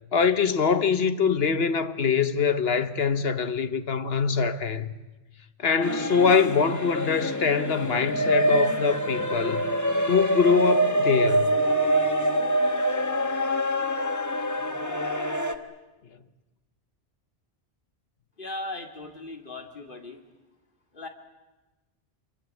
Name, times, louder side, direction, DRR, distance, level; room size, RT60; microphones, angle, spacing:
voice 1, 0.1-4.9 5.6-9.6 10.1-11.5, left 5 dB, 70° left, 1.3 m, -23 dB
sound 1, 5.8-15.5, right 1 dB, 15° left, 1.2 m, -25 dB
voice 2, 18.4-20.2 20.9-21.1, left 2 dB, 55° left, 2.7 m, -37 dB
25.5 x 23.0 x 8.3 m
omnidirectional pair, 1.1 m